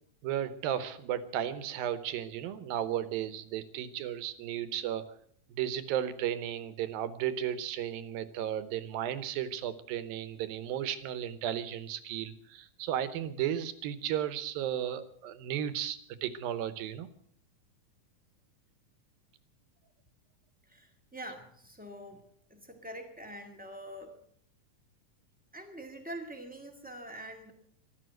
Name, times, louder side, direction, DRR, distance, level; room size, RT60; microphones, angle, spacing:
voice 1, 0.2-5.1 5.5-17.1, right 10 dB, 85° right, 13 dB, 2.8 m, -34 dB
voice 2, 20.7-22.2 22.5-24.1 25.5-27.5, right 1 dB, 10° right, 3 dB, 0.5 m, -45 dB
14.5 x 12.5 x 7.8 m, 0.62 s
omnidirectional pair, 4.1 m